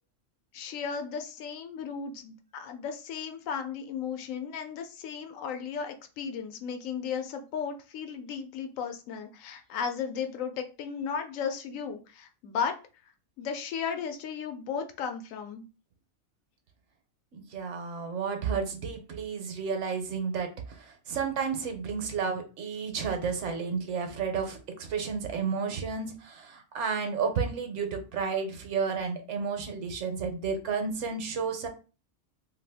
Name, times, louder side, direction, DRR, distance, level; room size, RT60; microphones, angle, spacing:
voice 1, 0.5-12.8 13.4-15.6, left 6 dB, 85° left, 6 dB, 1.0 m, -35 dB
voice 2, 17.3-31.7, right 5 dB, 70° right, 5 dB, 1.0 m, -32 dB
2.6 x 2.5 x 3.4 m, 0.34 s
omnidirectional pair, 1.3 m